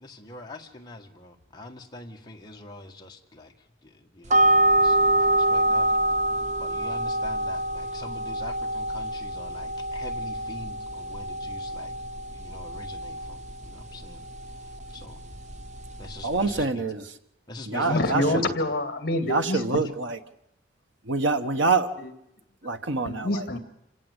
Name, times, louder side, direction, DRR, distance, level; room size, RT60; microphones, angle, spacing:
voice 1, 0.0-3.5 4.1-5.9 6.6-11.9 12.3-13.4 13.7-14.2 14.9-15.2 16.0-16.8 17.5-18.6, left 2 dB, 20° left, 2 dB, 1.7 m, -42 dB
sound 1, 4.3-16.6, right 1 dB, 35° right, 0.8 m, -26 dB
voice 2, 16.2-17.1 17.6-18.4 19.2-20.2 21.1-21.9 22.6-23.5, right 3 dB, 75° right, 8 dB, 1.4 m, -26 dB
voice 3, 17.7-19.6 23.1-23.6, left 1 dB, 50° left, 9 dB, 2.4 m, -26 dB
27.0 x 17.0 x 8.3 m, 0.81 s
head